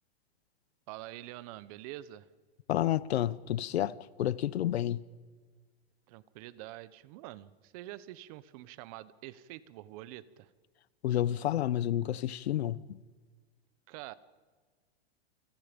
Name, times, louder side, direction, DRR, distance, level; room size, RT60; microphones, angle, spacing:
voice 1, 0.9-2.3 6.1-10.5 13.9-14.1, right 15 dB, 35° right, 1.0 m, -46 dB
voice 2, 2.7-5.0 11.0-13.0, left 12 dB, 85° left, 1.1 m, -30 dB
29.0 x 25.5 x 5.3 m
supercardioid pair, 165°, 31 cm